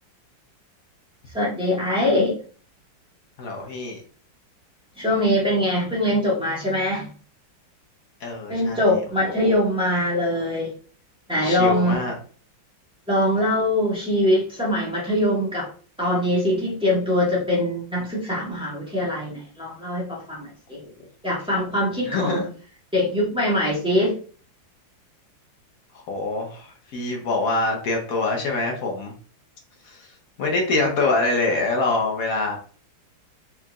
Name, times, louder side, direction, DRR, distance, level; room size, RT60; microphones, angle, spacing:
voice 1, 1.3-2.4 5.0-7.1 8.5-10.7 11.3-11.9 13.1-15.7 16.0-20.8 21.2-22.4 22.9-24.2, left 1 dB, 5° right, -8 dB, 1.4 m, -22 dB
voice 2, 3.4-4.0 8.2-8.8 9.2-9.3 11.4-12.1 20.8-20.9 22.1-22.5 25.9-29.1 29.8-30.0 30.4-32.6, left 3 dB, 55° left, 1 dB, 1.2 m, -25 dB
4.3 x 3.6 x 2.4 m, 0.42 s
omnidirectional pair, 2.1 m